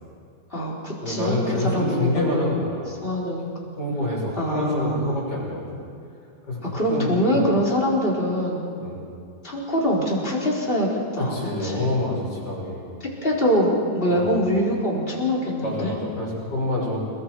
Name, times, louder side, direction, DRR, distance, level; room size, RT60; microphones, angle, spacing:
voice 1, 0.5-2.5 3.0-3.5 4.4-5.2 6.7-8.7 9.4-11.4 11.6-11.9 13.2-15.9, equal, 30° left, -3 dB, 4.6 m, -24 dB
voice 2, 1.0-2.9 3.7-5.8 6.5-6.6 6.8-7.5 8.8-9.0 11.2-12.8 14.1-14.3 15.6-17.0, left 1 dB, 75° left, -4 dB, 6.9 m, -27 dB
29.0 x 22.0 x 4.8 m, 2.5 s
omnidirectional pair, 2.0 m